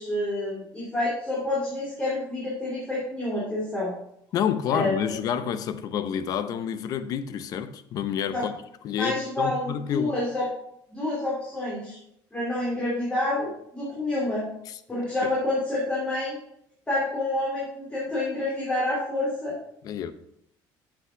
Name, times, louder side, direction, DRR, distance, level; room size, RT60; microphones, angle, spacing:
voice 1, 0.0-3.9 4.7-5.0 8.3-8.4 9.0-10.4 10.9-12.0 12.3-14.5 14.9-16.3 16.9-19.5, left 2 dB, 15° left, 2.9 m, -28 dB
voice 2, 4.3-8.6 8.8-10.1 14.7-14.8 15.2-15.3 19.8-20.1, left 8 dB, 50° left, 0.7 m, -29 dB
7.9 x 6.0 x 5.7 m
cardioid pair, 160°, 8 cm